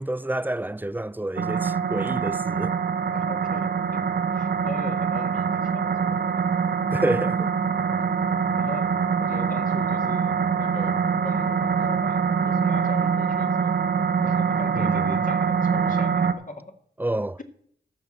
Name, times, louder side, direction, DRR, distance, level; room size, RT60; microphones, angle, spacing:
voice 1, 0.0-2.7 6.9-7.5 14.8-15.2 17.0-17.4, right 1 dB, 10° right, 0.4 m, -28 dB
sound 1, 1.4-16.3, right 6 dB, 70° right, 0.9 m, -24 dB
voice 2, 3.1-4.1 4.3-6.2 8.5-13.8 14.2-16.8, left 2 dB, 50° left, 1.9 m, -40 dB
13.0 x 6.0 x 7.9 m
cardioid pair, 55°, 18 cm